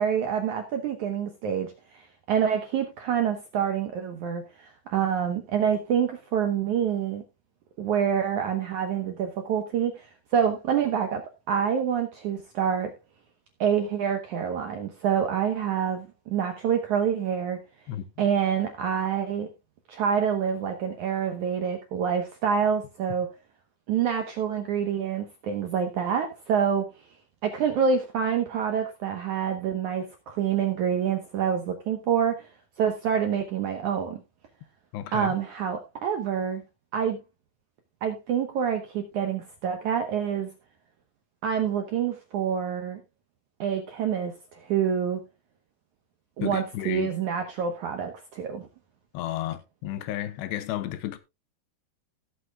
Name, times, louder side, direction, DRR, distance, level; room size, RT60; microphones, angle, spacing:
voice 1, 0.0-7.2 7.8-10.1 10.3-12.9 13.6-17.6 18.2-19.5 19.9-23.3 23.9-26.9 27.4-32.5 32.8-34.2 35.1-36.6 36.9-37.2 38.0-40.5 41.4-43.0 43.6-45.2 46.4-48.7, right 7 dB, 70° right, 1.8 m, -27 dB
voice 2, 17.9-18.2 34.9-35.4 46.4-47.1 49.1-51.2, left 13 dB, 85° left, 3.0 m, -33 dB
17.5 x 8.1 x 2.3 m
omnidirectional pair, 4.9 m